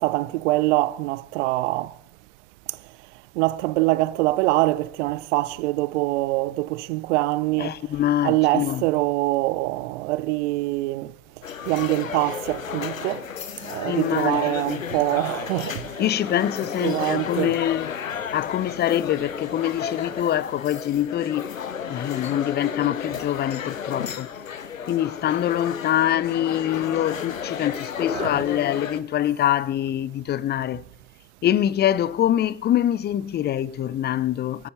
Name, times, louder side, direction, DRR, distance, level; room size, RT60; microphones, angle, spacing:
voice 1, 0.0-1.9 3.4-7.7 8.2-11.1 11.7-13.2 13.6-16.0 16.8-17.6 28.1-28.4, right 19 dB, 60° right, 0.7 m, -24 dB
voice 2, 7.6-8.9 13.8-14.8 16.0-18.0 18.3-21.5 21.9-24.3 24.9-30.8 31.4-34.7, left 11 dB, 25° left, 0.5 m, -24 dB
sound 1, 11.4-29.0, left 7 dB, 85° left, 0.7 m, -33 dB
20.0 x 9.6 x 5.6 m
figure-of-eight pair, 55°, 39 cm